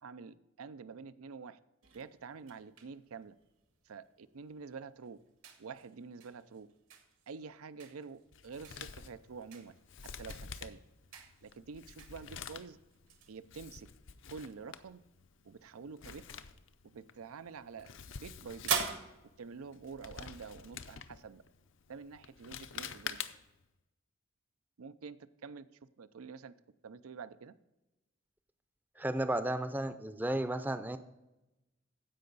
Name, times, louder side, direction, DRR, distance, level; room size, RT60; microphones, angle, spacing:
voice 1, 0.0-1.6 1.9-3.3 3.9-5.2 5.6-6.7 7.3-9.7 10.2-10.8 11.4-12.8 13.3-13.9 14.3-15.0 15.4-16.2 16.9-18.7 19.4-21.4 21.9-23.3 24.8-25.7 26.0-26.5 26.8-27.5, right 5 dB, 90° right, 15 dB, 0.5 m, -47 dB
sound 1, 1.8-20.6, right 6 dB, 70° right, 1.6 m, -46 dB
Male speech man speaking, 8.3-23.6, left 7 dB, 65° left, 0.6 m, -48 dB
voice 2, 29.0-31.0, right 1 dB, 10° right, 10 dB, 0.5 m, -33 dB
15.0 x 5.4 x 4.0 m, 0.97 s
head